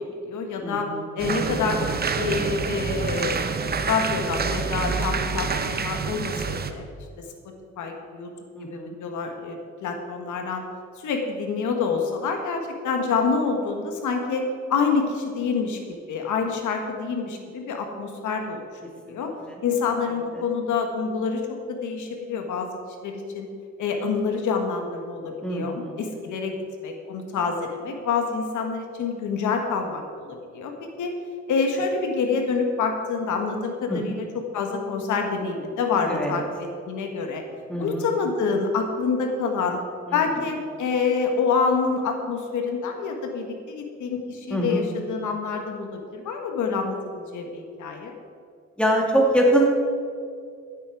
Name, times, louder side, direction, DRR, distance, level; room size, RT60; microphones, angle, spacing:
voice 1, 0.0-0.9 1.1-3.4 3.7-6.9 7.2-7.3 7.8-8.3 8.7-10.6 11.0-14.4 14.7-15.8 16.1-18.6 19.1-19.3 19.6-22.7 23.0-23.5 23.8-26.5 26.8-30.7 31.0-31.1 31.5-34.2 34.5-37.4 37.8-39.8 40.1-48.1, left 5 dB, 75° left, 4 dB, 1.5 m, -27 dB
voice 2, 0.6-1.0 8.5-9.0 19.1-19.6 20.3-20.4 25.4-25.9 33.9-34.0 36.1-36.4 37.7-38.1 40.1-40.3 44.5-44.9 48.8-49.6, right 1 dB, 5° left, -1 dB, 2.7 m, -24 dB
sound 1, 1.2-6.7, right 5 dB, 30° right, 0.9 m, -27 dB
15.0 x 8.4 x 4.8 m, 2.3 s
cardioid pair, 90°, 30 cm